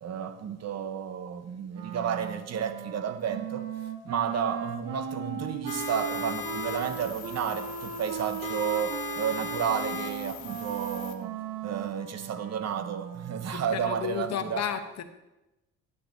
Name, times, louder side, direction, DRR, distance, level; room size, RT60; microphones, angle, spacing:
voice 1, 0.0-3.7 4.0-11.4 11.6-14.6, right 8 dB, 55° right, 9 dB, 1.0 m, -32 dB
Wind instrument woodwind instrument, 1.7-13.8, right 7 dB, 85° right, 0.9 m, -37 dB
sound 1, 5.7-11.1, left 8 dB, 80° left, 1.3 m, -38 dB
voice 2, 13.5-15.0, left 9 dB, 60° left, 8 dB, 1.0 m, -33 dB
12.0 x 9.4 x 2.7 m, 0.99 s
cardioid pair, 90°, 30 cm